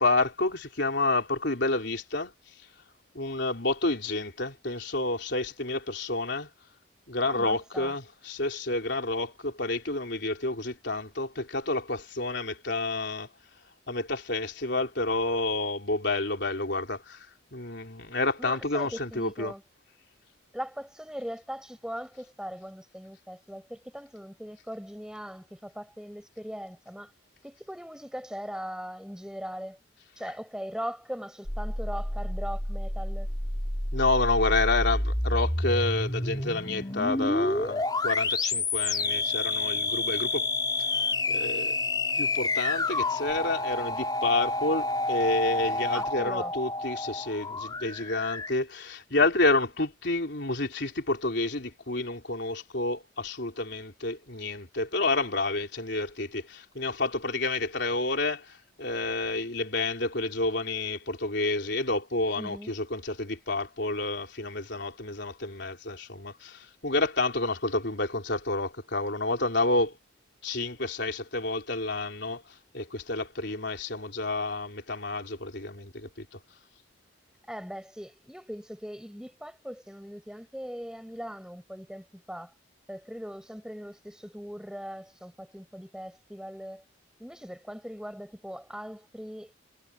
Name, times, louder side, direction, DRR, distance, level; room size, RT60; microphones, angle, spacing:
voice 1, 0.0-2.3 3.1-6.5 7.1-13.3 13.9-19.5 33.9-40.5 41.3-41.8 42.2-70.0 70.4-76.4, left 2 dB, 60° left, 4.0 m, -29 dB
voice 2, 7.3-7.9 18.4-19.6 20.5-27.1 27.4-29.8 30.2-33.3 45.9-46.5 62.4-62.7 77.5-82.5 82.9-86.8 87.2-89.5, equal, 5° right, 6.9 m, -40 dB
sound 1, 31.4-48.5, left 2 dB, 20° left, 3.6 m, -29 dB
head